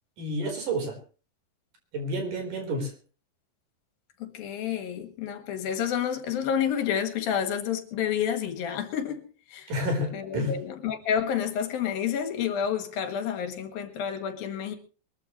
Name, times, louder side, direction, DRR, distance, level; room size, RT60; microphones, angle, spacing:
voice 1, 0.2-1.0 1.9-2.9 9.7-10.5, equal, 65° right, 5.8 m, -29 dB
voice 2, 4.2-9.7 10.1-14.8, left 8 dB, 80° left, 3.5 m, -29 dB
22.5 x 14.0 x 3.2 m
omnidirectional pair, 4.1 m